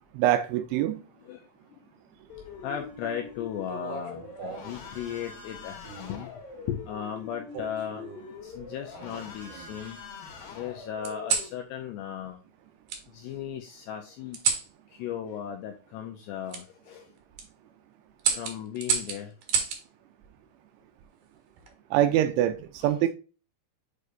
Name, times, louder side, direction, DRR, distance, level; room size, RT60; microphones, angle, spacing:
voice 1, 0.1-1.0 21.9-23.1, right 12 dB, 85° right, 2.8 m, -24 dB
sound 1, 2.3-11.5, left 5 dB, 55° left, 3.0 m, -44 dB
voice 2, 2.6-6.3 6.7-8.0 8.4-10.0 10.5-12.4 13.1-14.4 14.9-17.0 18.3-19.3 22.8-23.1, left 9 dB, 90° left, 2.4 m, -36 dB
sound 2, 3.7-4.8 5.8-6.2 7.5-8.3 8.9-9.8 11.0-11.5 12.9-13.0 14.3-14.7 16.5-16.6 17.2-17.5 18.2-19.8 21.3-21.7, right 6 dB, 65° right, 2.0 m, -31 dB
8.1 x 4.9 x 2.6 m
omnidirectional pair, 5.7 m